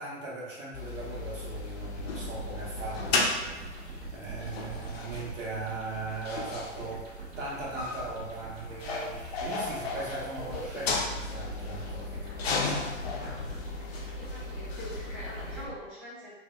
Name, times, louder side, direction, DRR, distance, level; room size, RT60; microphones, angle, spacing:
voice 1, 0.0-12.1 13.4-13.5, right 3 dB, 75° right, -5 dB, 1.0 m, -39 dB
sound 1, 0.7-15.7, left 3 dB, 55° left, 0.5 m, -35 dB
sound 2, 0.9-15.7, right 4 dB, 50° right, 0.7 m, -43 dB
voice 2, 14.1-16.3, left 1 dB, ahead, -17 dB, 0.3 m, -43 dB
2.7 x 2.1 x 2.2 m, 1.1 s
figure-of-eight pair, 110°, 38 cm